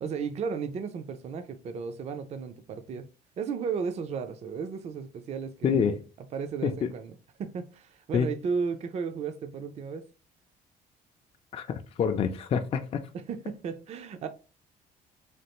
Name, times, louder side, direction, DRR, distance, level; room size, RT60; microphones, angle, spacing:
voice 1, 0.0-3.1 3.4-5.8 6.3-10.1 13.1-14.3, right 5 dB, 40° right, 0.4 m, -34 dB
voice 2, 5.6-6.0 6.6-6.9 8.1-8.3 11.5-13.1, left 6 dB, 35° left, 0.4 m, -27 dB
3.2 x 2.4 x 2.9 m
cardioid pair, 110°, 17 cm